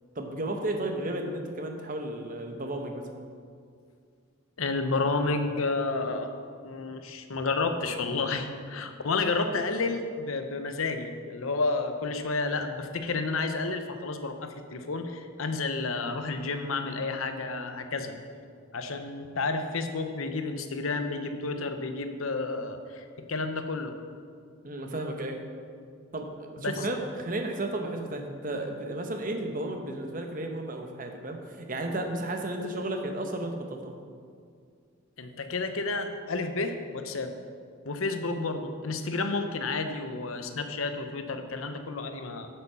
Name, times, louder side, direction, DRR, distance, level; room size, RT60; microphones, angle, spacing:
voice 1, 0.1-3.1 24.6-25.4 26.1-33.9, right 1 dB, 40° right, 4 dB, 1.0 m, -33 dB
voice 2, 4.6-6.3 6.6-18.1 18.7-23.9 26.6-26.7 35.2-37.3 37.8-42.5, left 3 dB, 85° left, 7 dB, 0.8 m, -31 dB
8.1 x 7.8 x 5.7 m, 2.2 s
head